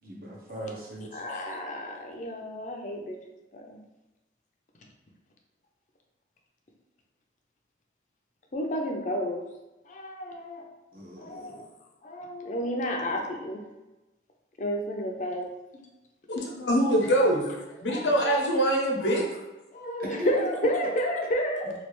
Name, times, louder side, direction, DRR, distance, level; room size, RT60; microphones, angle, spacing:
voice 1, 0.0-1.2 10.9-11.6 20.0-20.3, right 1 dB, 50° right, -3 dB, 0.8 m, -39 dB
voice 2, 1.1-3.1 3.5-3.8 8.5-9.4 9.9-10.6 11.2-11.6 12.0-13.6 14.6-15.5 17.9-18.4 19.0-19.2 19.7-21.7, equal, 45° left, 1 dB, 0.5 m, -31 dB
voice 3, 16.3-17.4 17.8-19.2, right 1 dB, 90° left, -1 dB, 0.8 m, -24 dB
3.2 x 2.4 x 3.0 m, 1.0 s
head